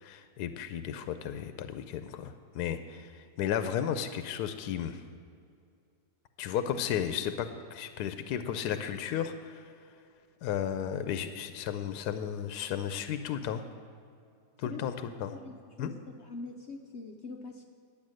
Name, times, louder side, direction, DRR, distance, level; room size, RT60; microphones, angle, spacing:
voice 1, 0.0-5.0 6.4-9.6 10.4-13.6 14.6-15.3 15.8-15.9, left 9 dB, 80° left, 9 dB, 1.1 m, -34 dB
voice 2, 15.3-17.6, left 3 dB, 60° left, 3 dB, 0.7 m, -43 dB
11.0 x 8.7 x 6.3 m, 2.4 s
omnidirectional pair, 1.7 m